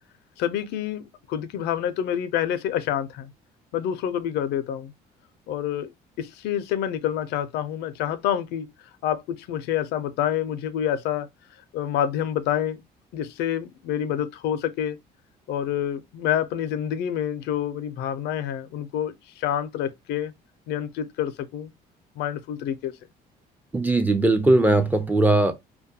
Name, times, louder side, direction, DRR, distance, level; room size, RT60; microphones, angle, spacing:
voice 1, 0.4-3.3 3.7-4.9 5.5-5.9 6.2-8.7 9.0-11.3 11.7-12.8 13.1-15.0 15.5-20.3 20.7-21.7 22.2-22.9, left 10 dB, 85° left, 0.4 m, -27 dB
voice 2, 23.7-25.5, right 2 dB, 10° right, 0.4 m, -19 dB
2.2 x 2.2 x 2.6 m
cardioid pair, 110°, 17 cm